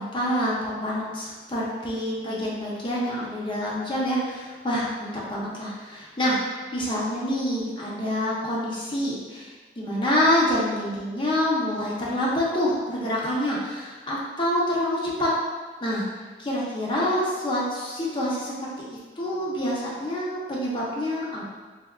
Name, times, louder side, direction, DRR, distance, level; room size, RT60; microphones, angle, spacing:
voice 1, 0.0-15.3 15.8-16.1 16.4-18.5 18.9-21.6, equal, 30° left, -5 dB, 0.6 m, -27 dB
3.5 x 2.8 x 2.2 m, 1.3 s
head